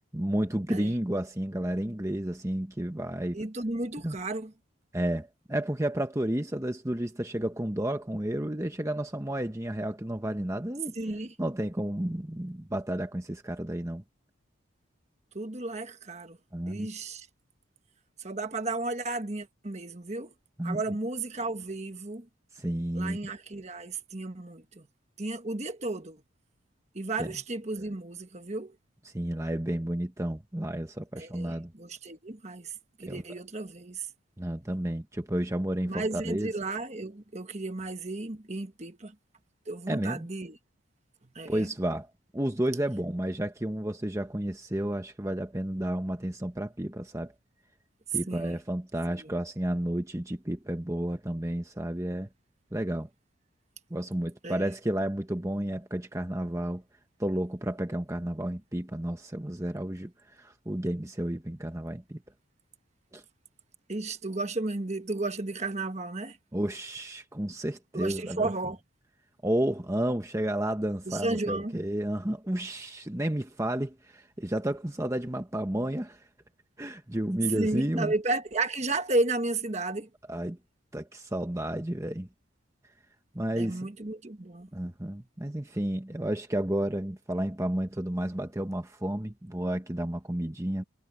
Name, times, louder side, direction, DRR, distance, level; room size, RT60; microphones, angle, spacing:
voice 1, 0.1-3.4 4.0-4.2 4.9-10.9 11.4-14.0 16.5-16.9 20.6-20.8 22.5-23.2 27.2-27.3 29.1-31.7 33.1-33.2 34.4-36.5 39.9-40.3 41.5-42.1 42.3-47.3 48.1-52.3 52.7-53.1 53.9-56.8 57.2-62.2 63.1-63.2 66.5-68.5 69.4-76.3 76.8-78.1 80.3-80.6 80.9-82.3 83.3-83.9 84.7-90.8, right 1 dB, 15° right, 1.0 m, -31 dB
voice 2, 3.3-4.5 10.9-11.3 15.3-16.4 16.7-17.3 18.2-20.3 20.6-22.3 22.9-24.9 25.2-26.2 26.9-28.8 31.2-34.1 35.9-39.2 39.7-40.6 41.3-41.7 48.3-48.6 49.1-49.3 54.4-54.6 63.9-66.4 67.9-68.8 71.0-71.8 77.4-80.1 83.5-84.7, right 2 dB, 35° right, 1.3 m, -33 dB
head